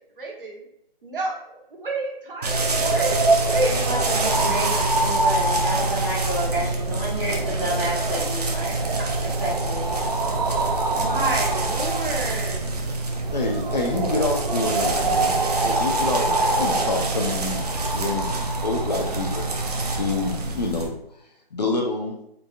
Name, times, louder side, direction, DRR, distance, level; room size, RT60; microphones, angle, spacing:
voice 1, 0.2-0.6 1.0-3.8 9.0-9.1 10.9-12.6, right 2 dB, 60° right, -1 dB, 1.2 m, -29 dB
sound 1, 2.4-20.9, right 2 dB, 40° right, 0.5 m, -24 dB
voice 2, 3.7-8.7 9.2-9.9, right 1 dB, 5° right, -15 dB, 1.5 m, -30 dB
voice 3, 13.3-18.3 18.6-20.9 21.5-22.2, left 3 dB, 45° left, 1 dB, 0.5 m, -28 dB
4.0 x 3.4 x 2.4 m, 0.76 s
figure-of-eight pair, 155°, 31 cm